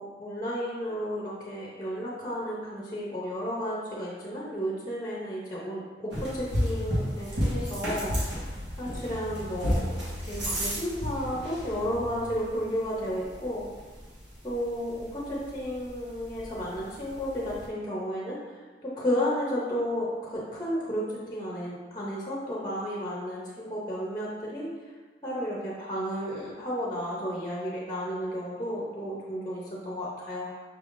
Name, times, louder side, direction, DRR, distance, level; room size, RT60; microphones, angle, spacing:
voice 1, 0.0-8.1 8.4-13.7 14.4-18.4 18.8-21.0 21.3-24.7 25.2-30.6, equal, 20° left, -5 dB, 0.7 m, -33 dB
sound 1, 6.1-17.7, equal, 85° right, 1.3 m, -33 dB
5.8 x 3.4 x 2.5 m, 1.4 s
head